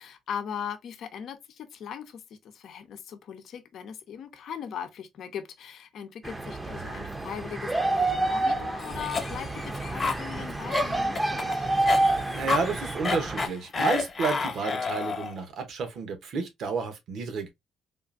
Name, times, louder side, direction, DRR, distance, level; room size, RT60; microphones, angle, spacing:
voice 1, 0.0-11.7, left 8 dB, 70° left, 0.6 m, -39 dB
sound 1, 6.2-13.5, right 2 dB, 15° right, 0.6 m, -28 dB
Cough, 8.8-15.4, left 4 dB, 40° left, 1.0 m, -30 dB
voice 2, 12.3-17.5, right 4 dB, 70° right, 1.0 m, -31 dB
3.7 x 2.4 x 2.4 m
cardioid pair, 90°, 0 cm